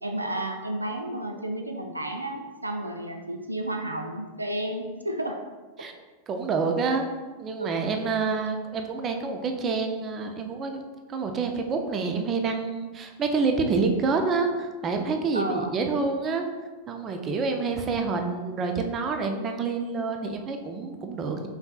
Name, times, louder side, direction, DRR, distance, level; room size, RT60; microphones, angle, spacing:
voice 1, 0.0-5.4 7.6-7.8 15.3-15.8, right 1 dB, 85° right, 4 dB, 0.4 m, -32 dB
voice 2, 6.3-7.1 7.4-10.8 11.1-16.5 16.9-21.5, right 4 dB, 25° right, 4 dB, 0.5 m, -27 dB
5.5 x 4.0 x 2.4 m, 1.3 s
figure-of-eight pair, 90°, 0 cm